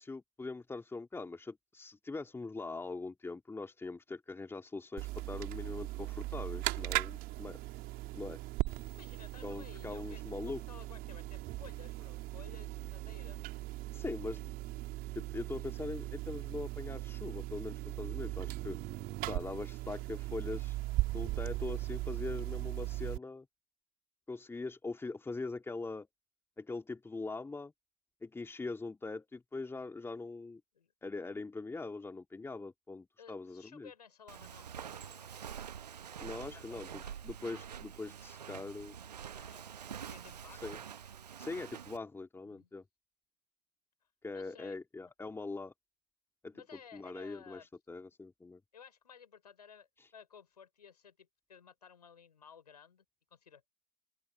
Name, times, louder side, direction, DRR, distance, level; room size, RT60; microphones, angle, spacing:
voice 1, 0.0-7.6 8.1-8.4 9.4-10.6 13.9-14.4 15.1-18.8 19.2-20.8 21.1-23.5 24.3-26.1 26.6-27.7 28.2-30.6 31.0-33.9 34.9-35.0 36.2-39.0 40.5-40.8 41.4-42.8 44.2-45.7 46.4-48.6 50.0-50.1, left 3 dB, 10° left, 3.0 m, -42 dB
sound 1, 5.0-23.2, right 19 dB, 45° right, 3.1 m, -38 dB
voice 2, 8.9-10.2 10.5-13.5 30.7-30.9 33.2-35.4 36.3-37.2 39.3-39.6 40.1-40.7 42.4-42.7 44.3-44.8 46.5-47.7 48.7-53.0 53.3-53.7, left 7 dB, 80° left, 5.4 m, -56 dB
Walk footsteps, 34.3-42.0, right 8 dB, 80° right, 1.0 m, -46 dB
open air
figure-of-eight pair, 85°, 20 cm